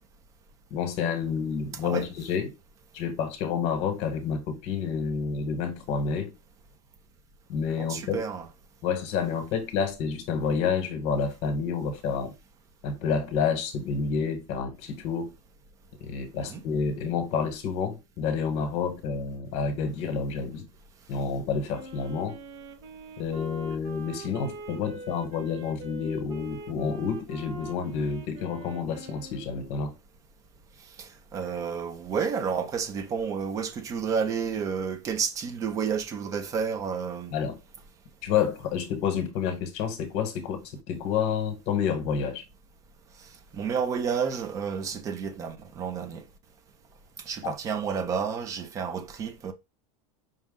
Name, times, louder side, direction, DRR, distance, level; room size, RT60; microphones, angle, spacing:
voice 1, 0.7-2.5 2.9-6.3 7.5-8.2 8.8-12.3 12.8-15.3 16.0-20.7 21.1-22.4 23.2-29.9 37.3-37.6 38.2-42.4 47.4-47.5, left 6 dB, 40° left, 1.3 m, -29 dB
voice 2, 1.7-2.1 7.8-8.5 16.4-16.6 31.0-37.4 43.5-46.2 47.3-49.5, right 6 dB, 20° right, 0.6 m, -30 dB
Wind instrument woodwind instrument, 21.7-29.8, right 2 dB, 40° right, 1.0 m, -43 dB
5.4 x 2.4 x 3.7 m
supercardioid pair, 170°, 16 cm